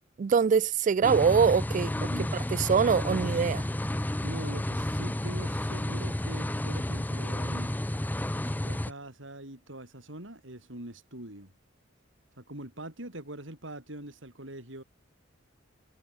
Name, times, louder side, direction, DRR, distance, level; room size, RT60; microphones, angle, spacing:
voice 1, 0.2-1.9 2.5-3.7, right 6 dB, 40° right, 0.3 m, -23 dB
sound 1, 1.0-8.9, left 1 dB, 10° left, 0.6 m, -31 dB
voice 2, 2.0-2.3 4.2-7.8 8.6-11.5 12.4-14.8, right 1 dB, 70° right, 5.7 m, -43 dB
head